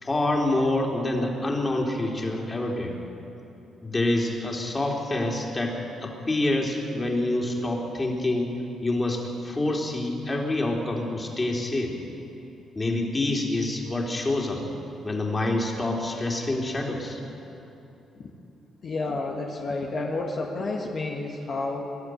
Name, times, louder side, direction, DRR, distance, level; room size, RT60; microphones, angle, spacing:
voice 1, 0.0-2.9 3.8-11.9 12.7-14.6 15.0-17.2, left 2 dB, 25° left, -1 dB, 3.7 m, -27 dB
voice 2, 18.8-21.9, left 3 dB, 50° left, -2 dB, 2.1 m, -30 dB
23.0 x 12.0 x 9.4 m, 2.9 s
cardioid pair, 90°, 0 cm